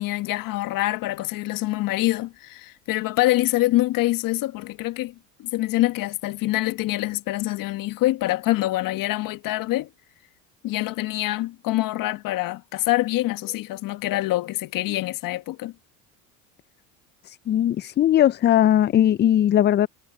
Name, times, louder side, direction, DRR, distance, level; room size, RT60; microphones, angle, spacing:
voice 1, 0.0-5.1 5.4-9.9 10.6-15.7, left 17 dB, 55° left, 1.6 m, -25 dB
voice 2, 17.3-19.9, left 11 dB, 30° left, 0.4 m, -19 dB
hypercardioid pair, 80°, 39 cm